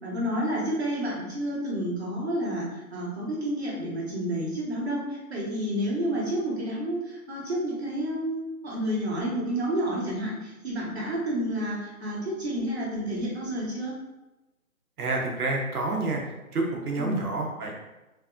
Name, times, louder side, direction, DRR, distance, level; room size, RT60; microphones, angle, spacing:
voice 1, 0.0-13.9 17.0-17.2, equal, 45° right, -4 dB, 1.0 m, -30 dB
voice 2, 15.0-16.2 16.5-17.7, right 2 dB, 85° right, 0 dB, 0.9 m, -28 dB
3.4 x 2.2 x 2.4 m, 1.0 s
hypercardioid pair, 180°, 43 cm